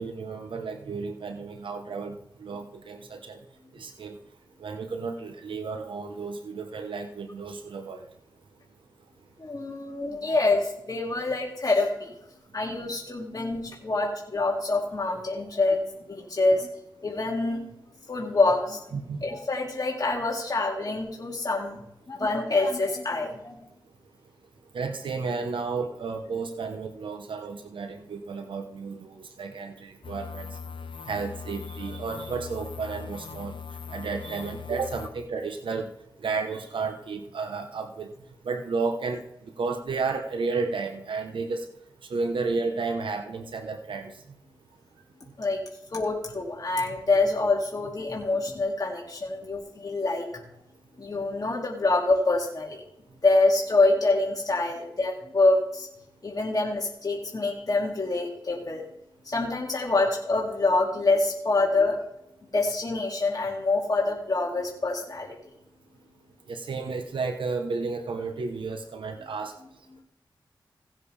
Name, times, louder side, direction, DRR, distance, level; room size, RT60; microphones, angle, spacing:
voice 1, 0.0-3.4 3.7-4.2 4.6-8.0 18.9-19.2 24.7-30.6 31.1-33.6 33.9-35.9 36.2-38.1 38.4-41.7 42.1-44.1 46.9-47.0 66.5-69.5, right 4 dB, 85° right, 6 dB, 0.9 m, -32 dB
voice 2, 9.4-12.1 12.5-16.7 17.0-17.6 18.1-18.9 19.2-21.8 22.1-23.6 45.4-45.6 45.9-50.3 51.0-52.8 53.2-55.9 56.2-58.8 59.2-61.9 62.5-65.4, left 2 dB, 45° left, -2 dB, 2.4 m, -26 dB
sound 1, 30.0-35.1, left 6 dB, 75° left, 1.0 m, -40 dB
17.0 x 7.5 x 3.3 m, 0.81 s
cardioid pair, 40°, 8 cm